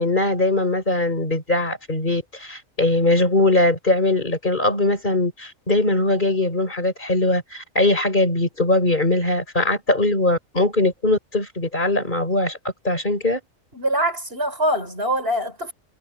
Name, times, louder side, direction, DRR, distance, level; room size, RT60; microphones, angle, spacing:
voice 1, 0.0-12.6 12.8-13.4, left 2 dB, 35° left, 4.9 m, -21 dB
voice 2, 13.7-15.7, equal, 45° right, 4.9 m, -23 dB
omnidirectional pair, 1.4 m